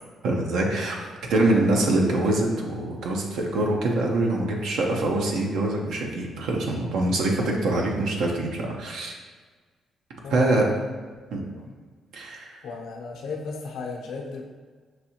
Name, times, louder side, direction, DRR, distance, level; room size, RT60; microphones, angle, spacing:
voice 1, 0.2-9.1 10.3-10.6 11.3-11.4 12.1-12.6, right 2 dB, 80° right, 0 dB, 0.7 m, -24 dB
voice 2, 10.2-10.9 11.5-11.7 12.6-14.4, left 4 dB, 80° left, 0 dB, 0.7 m, -34 dB
5.8 x 2.7 x 2.9 m, 1.5 s
cardioid pair, 90°, 0 cm